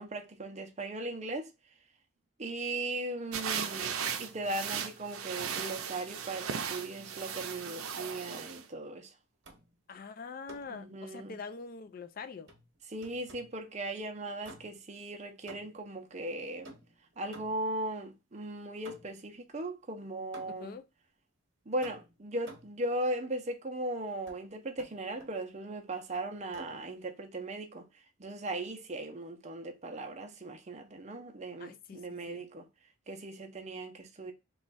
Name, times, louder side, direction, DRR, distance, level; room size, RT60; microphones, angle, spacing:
voice 1, 0.0-1.5 2.4-9.1 10.7-11.4 12.9-16.7 17.2-20.8 21.7-27.9 28.2-32.6 33.1-34.3, right 1 dB, 35° right, 0.5 m, -38 dB
sound 1, 3.3-8.6, right 7 dB, 85° right, 0.5 m, -37 dB
sound 2, 9.4-9.8 10.5-10.8 12.5-13.6 14.4-14.9 15.5-15.9 16.6-17.8 18.8-19.3 20.3-20.8 21.8-22.8 24.3-24.4 24.8-25.4 26.5-26.9, right 2 dB, 60° right, 0.9 m, -52 dB
voice 2, 9.9-12.5 20.6-20.8 31.6-32.5, left 5 dB, 45° left, 0.3 m, -44 dB
3.0 x 2.3 x 4.0 m
head